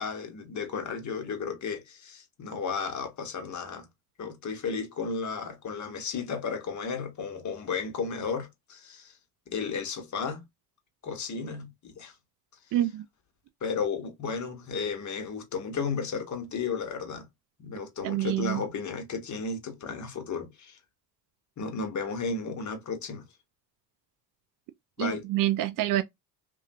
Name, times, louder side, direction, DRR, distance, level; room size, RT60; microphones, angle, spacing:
voice 1, 0.0-3.9 4.2-9.1 9.5-10.4 11.0-12.1 13.6-17.3 17.6-20.8 21.6-23.2 25.0-25.2, left 5 dB, 35° left, 1.1 m, -33 dB
voice 2, 12.7-13.1 18.0-18.6 25.0-26.0, right 14 dB, 45° right, 0.5 m, -27 dB
2.6 x 2.2 x 2.7 m
hypercardioid pair, 65°, 50 cm